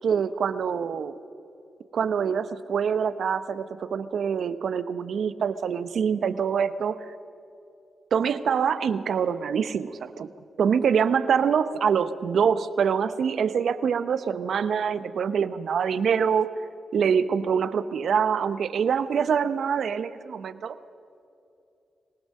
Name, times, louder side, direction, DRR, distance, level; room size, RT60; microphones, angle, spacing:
voice 1, 0.0-1.1 1.9-7.1 8.1-10.1 10.6-16.5 16.9-20.8, right 7 dB, 75° right, 13 dB, 0.8 m, -25 dB
24.5 x 18.5 x 6.5 m, 2.7 s
supercardioid pair, 45°, 0 cm